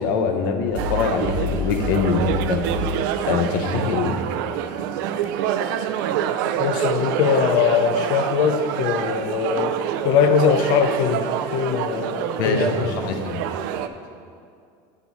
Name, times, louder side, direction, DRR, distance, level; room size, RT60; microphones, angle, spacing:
voice 1, 0.0-2.7 3.3-4.2 12.4-13.4, left 5 dB, 90° left, 5 dB, 0.7 m, -23 dB
sound 1, 0.7-3.1, left 2 dB, 50° right, 1.2 m, -29 dB
sound 2, 0.8-13.9, right 9 dB, 70° right, 0.4 m, -27 dB
voice 2, 6.6-9.7 10.0-13.1, left 6 dB, 45° left, 9 dB, 0.4 m, -21 dB
9.0 x 4.0 x 4.6 m, 2.3 s
cardioid pair, 170°, 11 cm